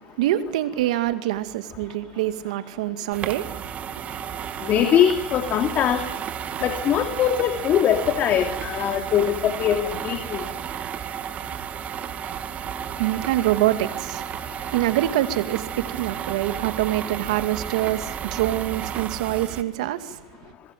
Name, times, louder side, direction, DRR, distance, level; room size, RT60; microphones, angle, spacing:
voice 1, 0.2-3.6 3.9-4.1 13.0-14.3 14.7-20.2, right 14 dB, 75° right, 2.3 m, -25 dB
sound 1, 3.1-19.6, right 8 dB, 35° right, 2.2 m, -33 dB
voice 2, 4.6-6.0 6.6-10.4, left 9 dB, 45° left, 2.7 m, -22 dB
26.5 x 21.5 x 9.2 m
hypercardioid pair, 100°, 4 cm